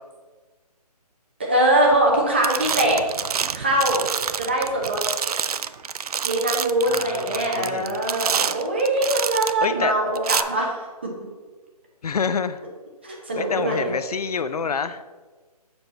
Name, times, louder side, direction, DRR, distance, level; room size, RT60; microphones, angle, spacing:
voice 1, 1.4-3.0 3.5-4.0 4.4-5.0 6.2-10.8 13.0-13.9, right 1 dB, 15° right, -1 dB, 0.7 m, -22 dB
sound 1, 1.9-2.2 2.4-9.7 10.2-10.4, right 7 dB, 70° right, 0.4 m, -27 dB
voice 2, 6.9-8.0 9.6-9.9 12.0-12.6 13.4-15.0, left 5 dB, 70° left, 12 dB, 0.5 m, -27 dB
7.0 x 6.0 x 4.0 m, 1.3 s
hypercardioid pair, 180°, 20 cm